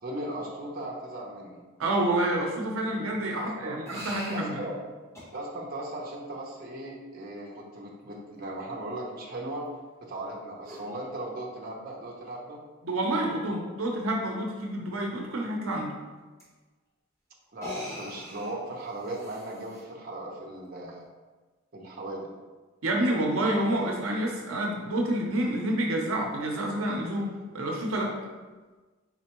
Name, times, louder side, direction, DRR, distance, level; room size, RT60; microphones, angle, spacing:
voice 1, 0.0-1.6 3.4-3.8 4.3-4.8 5.3-9.7 10.0-12.6 17.5-21.0 21.7-22.3, right 1 dB, 45° right, -3 dB, 0.8 m, -37 dB
voice 2, 1.8-4.6 12.8-15.9 22.8-28.1, right 1 dB, 85° right, 0 dB, 0.7 m, -28 dB
sound 1, 3.8-4.5 5.1-5.3 7.4-7.5 10.6-10.9 12.3-12.4 12.8-12.9 13.2-13.3 16.4-16.5 17.5-19.8, left 1 dB, 15° left, 1.1 m, -41 dB
4.3 x 4.1 x 3.0 m, 1.3 s
head